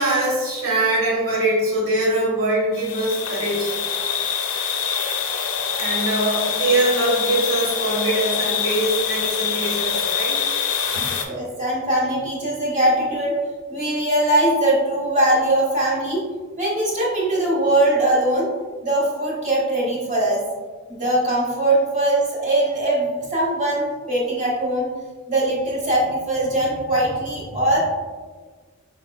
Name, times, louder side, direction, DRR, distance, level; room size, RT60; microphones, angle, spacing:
voice 1, 0.0-3.7 5.8-10.5, right 1 dB, 75° right, -4 dB, 1.3 m, -22 dB
sound 1, 2.7-11.2, left 7 dB, 80° left, 0.5 m, -25 dB
voice 2, 11.3-13.3 13.7-16.2 16.6-18.5 18.8-20.4 20.9-24.9 25.3-27.8, right 1 dB, 35° right, -5 dB, 1.0 m, -21 dB
4.9 x 3.2 x 2.2 m, 1.5 s
head